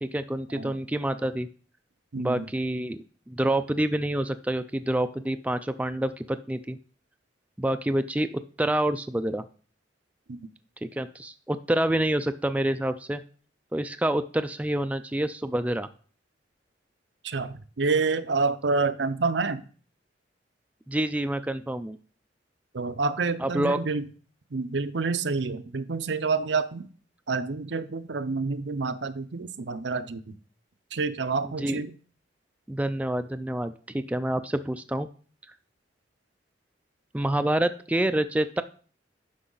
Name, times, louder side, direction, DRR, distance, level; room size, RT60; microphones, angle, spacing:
voice 1, 0.0-1.5 2.2-3.0 3.3-6.8 7.6-9.4 10.8-13.2 13.7-15.9 20.9-22.0 23.4-23.8 31.4-31.8 32.7-35.1 37.1-38.6, right 1 dB, 10° right, 9 dB, 0.4 m, -27 dB
voice 2, 2.1-2.5 10.3-10.5 17.2-19.6 22.7-24.0 24.5-26.9 27.3-30.2 30.9-31.9, right 4 dB, 70° right, 12 dB, 0.6 m, -28 dB
9.8 x 6.1 x 3.9 m, 0.42 s
head